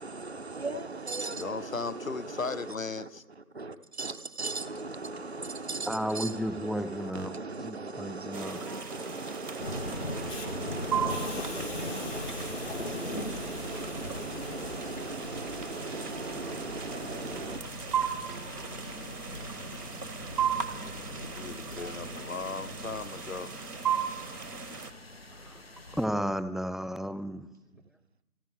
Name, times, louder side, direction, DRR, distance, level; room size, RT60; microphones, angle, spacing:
voice 1, 0.0-2.7 3.5-17.6 17.9-18.0, right 3 dB, 45° right, 12 dB, 0.7 m, -38 dB
voice 2, 1.3-3.2 21.1-23.5, left 4 dB, 55° left, 18 dB, 0.6 m, -37 dB
voice 3, 5.9-7.3 7.6-8.6 25.4-25.6 26.0-27.5, equal, ahead, 12 dB, 0.4 m, -33 dB
sound 1, 8.3-24.9, right 7 dB, 75° right, 1.4 m, -37 dB
sound 2, 9.6-26.1, left 1 dB, 40° left, 1.0 m, -41 dB
Hiss, 10.3-10.5 11.1-16.2, left 3 dB, 85° left, 3.2 m, -47 dB
29.5 x 10.5 x 3.5 m, 0.99 s
figure-of-eight pair, 175°, 48 cm